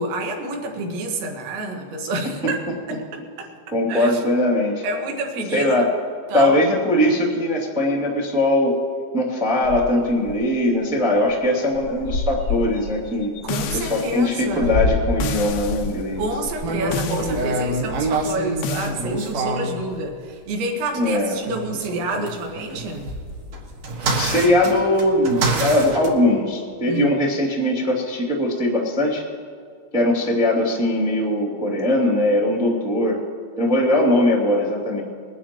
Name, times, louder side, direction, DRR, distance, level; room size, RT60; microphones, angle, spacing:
voice 1, 0.0-2.6 2.9-3.5 3.9-4.2 4.8-5.9 6.3-6.6 13.4-14.7 16.2-23.1 26.9-27.1, right 2 dB, 80° right, 2 dB, 3.8 m, -28 dB
voice 2, 3.7-4.8 5.5-5.8 6.3-8.7 9.1-13.3 13.7-16.3 20.9-21.4 24.2-29.2 29.9-33.1 33.6-35.0, left 1 dB, 5° right, -3 dB, 0.7 m, -20 dB
sound 1, 9.6-10.4 10.8-10.9 11.2-11.4 11.7-16.7, left 2 dB, 50° left, 1.4 m, -28 dB
sound 2, 13.5-14.3 15.2-15.9 16.9-17.5 18.6-19.0, left 5 dB, 75° left, 2.5 m, -30 dB
sound 3, 16.6-19.8 21.4-26.1, right 2 dB, 60° right, 1.8 m, -26 dB
22.0 x 11.5 x 3.0 m, 2.3 s
omnidirectional pair, 5.2 m